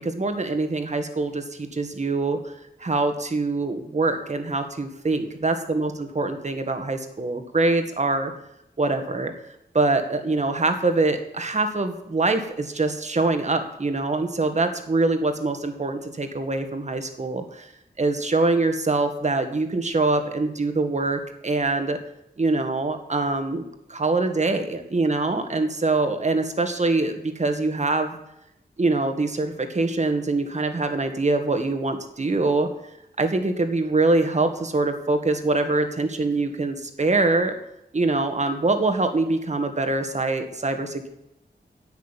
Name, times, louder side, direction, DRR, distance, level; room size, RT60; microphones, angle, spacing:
voice 1, 0.0-2.5 2.8-8.3 8.8-9.3 9.7-17.7 18.0-22.0 22.4-23.6 23.9-28.2 28.8-32.7 33.2-37.5 37.9-41.1, right 3 dB, 40° right, 7 dB, 1.9 m, -24 dB
11.0 x 9.2 x 9.1 m, 0.81 s
wide cardioid pair, 120°, 18 cm